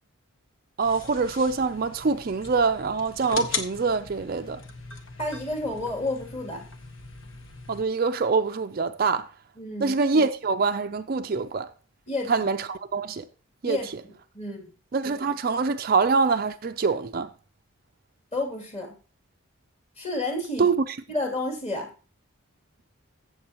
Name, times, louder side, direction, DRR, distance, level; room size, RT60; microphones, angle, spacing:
sound 1, 0.8-7.8, left 4 dB, 60° left, 1.2 m, -39 dB
voice 1, 0.8-4.6 7.7-9.3 9.8-11.7 12.3-13.2 13.6-13.8 14.9-17.3 20.6-21.0, right 4 dB, 40° right, 0.4 m, -24 dB
voice 2, 5.2-6.7 9.6-10.0 12.1-12.3 13.6-14.7 18.3-18.9 20.0-20.7 21.1-21.9, left 2 dB, 30° left, 2.7 m, -31 dB
15.5 x 7.1 x 2.9 m
head